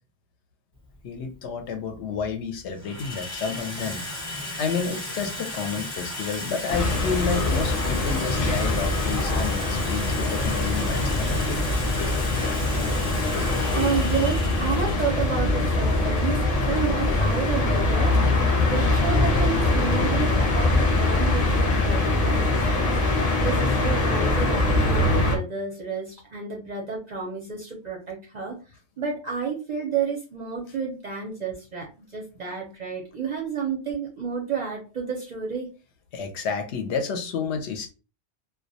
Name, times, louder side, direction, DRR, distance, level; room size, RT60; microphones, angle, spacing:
Water tap faucet / Sink (filling or washing), 0.8-1.0 1.9-2.3 2.6-20.2, left 2 dB, 25° left, 0.9 m, -36 dB
voice 1, 1.0-4.0 4.6-11.6 36.1-37.9, left 5 dB, 70° left, 0.8 m, -30 dB
sound 1, 6.7-25.4, left 2 dB, 50° left, 0.4 m, -23 dB
voice 2, 13.7-18.2 18.6-23.0 23.4-28.6 29.0-35.7, right 5 dB, 50° right, 0.5 m, -31 dB
2.2 x 2.1 x 2.6 m
omnidirectional pair, 1.2 m